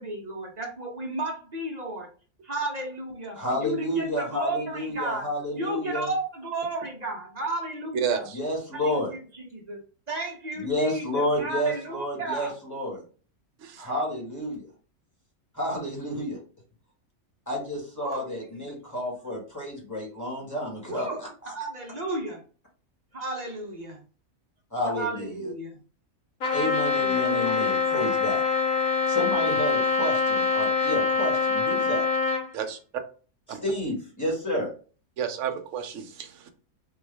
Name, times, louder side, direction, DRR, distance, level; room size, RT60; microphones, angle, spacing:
voice 1, 0.0-2.1 2.4-5.3 5.5-8.3 8.7-12.5 18.0-18.3 20.9-21.3 21.5-22.4 23.1-24.0 24.9-25.8 27.3-28.2, right 2 dB, 40° right, 0.6 m, -33 dB
voice 2, 3.3-6.1 8.3-9.1 10.6-13.0 13.8-14.7 15.5-16.4 17.5-21.1 21.4-21.5 24.7-25.5 26.5-28.4 29.1-32.0 33.5-34.7, left 1 dB, 15° left, 1.4 m, -30 dB
voice 3, 7.9-8.4 13.6-13.7 32.5-32.8 33.5-33.6 35.2-36.3, right 7 dB, 70° right, 0.9 m, -30 dB
Trumpet, 26.4-32.5, left 5 dB, 85° left, 1.3 m, -24 dB
3.9 x 2.4 x 3.3 m
omnidirectional pair, 1.4 m